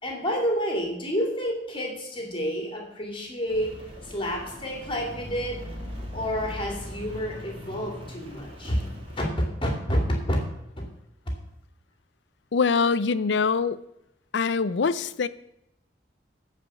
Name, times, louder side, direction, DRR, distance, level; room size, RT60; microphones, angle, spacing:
voice 1, 0.0-5.7 6.1-8.9 9.2-10.4 10.8-10.9, equal, 30° left, 1 dB, 2.5 m, -29 dB
Rain, 3.5-9.3, left 1 dB, 30° right, 2.6 m, -40 dB
voice 2, 12.5-13.8 14.3-15.3, left 5 dB, 70° left, 16 dB, 0.5 m, -23 dB
13.0 x 5.1 x 7.4 m, 0.80 s
head